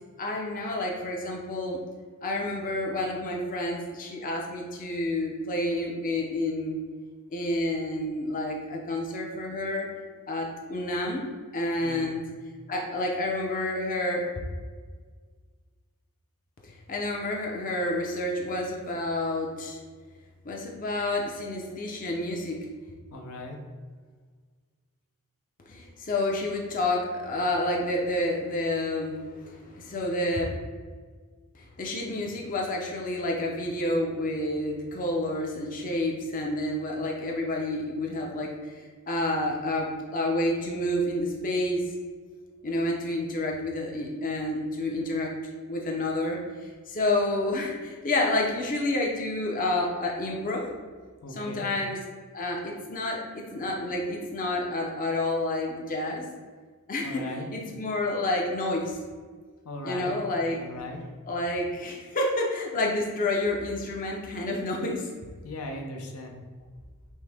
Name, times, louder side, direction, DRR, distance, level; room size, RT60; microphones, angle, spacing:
voice 1, 0.2-1.8 2.2-6.8 7.3-9.9 10.3-11.2 11.5-12.2 12.7-14.3 16.6-19.8 20.4-22.6 25.7-30.4 31.5-41.9 42.6-50.7 51.3-52.0 52.3-56.2 56.9-59.0 59.8-60.6 61.3-65.1, left 1 dB, 40° left, 0 dB, 0.6 m, -29 dB
voice 2, 11.8-12.2 23.1-23.6 51.2-51.7 57.0-57.5 59.6-60.2 60.5-61.0 65.4-66.4, left 2 dB, 80° left, 2 dB, 0.6 m, -38 dB
6.2 x 2.1 x 3.4 m, 1.5 s
head